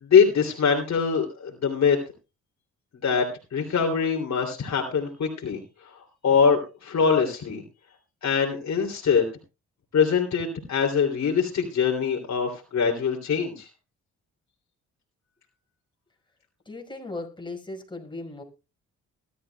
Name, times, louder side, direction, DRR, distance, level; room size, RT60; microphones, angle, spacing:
voice 1, 0.0-2.0 3.0-3.2 3.5-7.6 8.2-9.3 9.9-13.7, left 6 dB, 60° left, 1 dB, 3.0 m, -23 dB
voice 2, 16.7-18.4, left 2 dB, 15° left, 2 dB, 5.1 m, -37 dB
21.0 x 12.5 x 2.3 m, 0.30 s
supercardioid pair, 65°, 31 cm